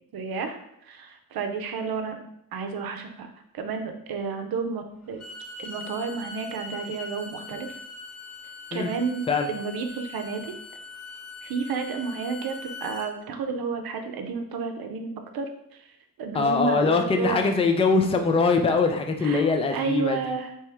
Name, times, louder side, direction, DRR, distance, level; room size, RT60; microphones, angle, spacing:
voice 1, 0.1-0.6 0.8-2.2 2.5-5.2 5.6-7.7 8.7-9.2 9.5-10.5 11.4-15.5 16.2-17.5 19.2-20.5, right 5 dB, 90° right, 6 dB, 0.6 m, -31 dB
Bowed string instrument, 5.0-13.1, left 3 dB, 45° left, 1.1 m, -41 dB
voice 2, 16.3-20.2, left 4 dB, 15° left, 5 dB, 0.3 m, -22 dB
3.4 x 3.0 x 4.4 m, 0.75 s
wide cardioid pair, 140°, 35 cm